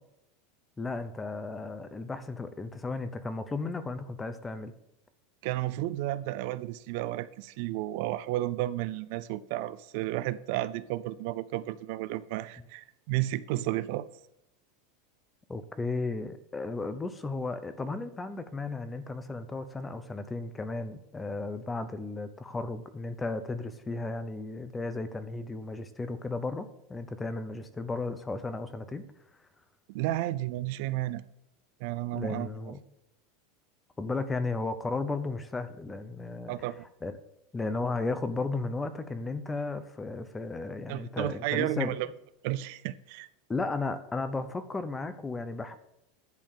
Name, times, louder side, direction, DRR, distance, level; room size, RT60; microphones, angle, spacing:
voice 1, 0.8-4.7 15.5-29.1 32.1-32.8 34.0-36.5 37.0-37.1 37.5-41.9 43.5-45.7, left 3 dB, 10° left, 0.7 m, -34 dB
voice 2, 5.4-14.1 29.9-31.2 31.8-32.5 36.5-36.9 40.9-42.1 42.4-43.3, right 15 dB, 55° right, 0.4 m, -32 dB
10.5 x 4.5 x 7.1 m
supercardioid pair, 155°, 0 cm